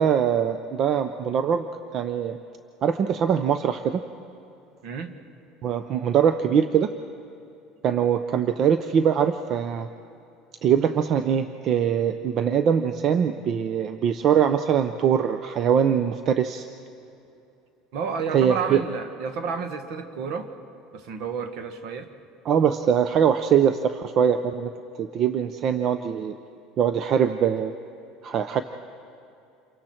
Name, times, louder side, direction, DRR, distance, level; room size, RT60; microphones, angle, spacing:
voice 1, 0.0-1.7 1.9-2.4 2.8-4.0 5.6-6.9 7.8-9.9 10.6-16.7 18.3-18.8 22.5-24.7 25.0-26.3 26.8-27.7 28.2-28.6, right 8 dB, 45° right, 10 dB, 0.7 m, -22 dB
voice 2, 4.8-5.1 17.9-20.5 20.9-22.1, right 5 dB, 65° right, 8 dB, 1.6 m, -31 dB
28.0 x 23.5 x 4.5 m, 2.7 s
supercardioid pair, 125°, 0 cm